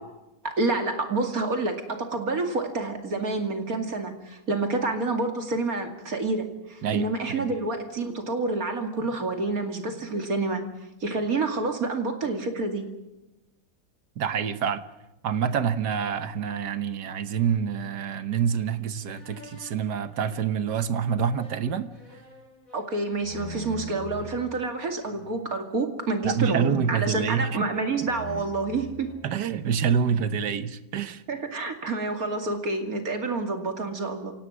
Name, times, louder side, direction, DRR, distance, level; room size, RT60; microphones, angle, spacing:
voice 1, 0.4-10.6 11.0-12.9 22.7-29.1 31.3-34.3, right 3 dB, 60° right, 2.8 m, -28 dB
voice 2, 6.8-7.5 14.2-14.8 15.2-21.9 26.2-27.6 29.2-31.2, right 7 dB, 85° right, 1.7 m, -27 dB
sound 1, 19.1-24.4 25.0-25.5 26.2-27.6 27.9-29.9, equal, 55° left, 5.5 m, -44 dB
26.5 x 18.0 x 6.3 m
omnidirectional pair, 1.8 m